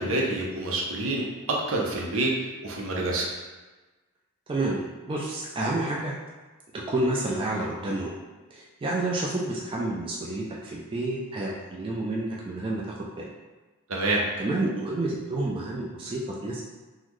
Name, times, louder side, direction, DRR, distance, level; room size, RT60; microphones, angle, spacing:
voice 1, 0.0-2.3 2.6-3.3 13.9-14.2, right 2 dB, 70° right, -2 dB, 0.6 m, -27 dB
voice 2, 4.5-6.2 6.7-8.2 8.5-13.3 14.4-16.6, right 2 dB, 25° right, -3 dB, 0.3 m, -29 dB
3.7 x 2.0 x 3.0 m, 1.2 s
head